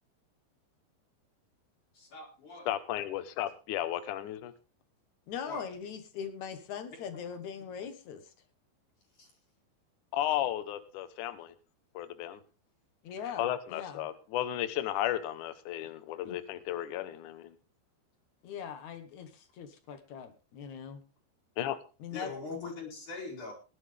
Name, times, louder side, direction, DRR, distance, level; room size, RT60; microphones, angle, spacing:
voice 1, 1.9-2.7 5.4-5.7 7.1-7.2 7.6-7.7 9.2-9.3 22.1-23.5, left 3 dB, 45° left, -2 dB, 4.9 m, -41 dB
voice 2, 2.7-4.5 10.1-11.5 11.9-12.4 13.4-17.5 21.6-21.8, left 12 dB, 90° left, 12 dB, 1.7 m, -34 dB
voice 3, 5.3-8.2 13.0-14.0 16.2-16.4 18.4-21.0 22.0-22.3, left 7 dB, 65° left, 9 dB, 1.9 m, -41 dB
19.0 x 11.5 x 3.4 m, 0.33 s
omnidirectional pair, 5.3 m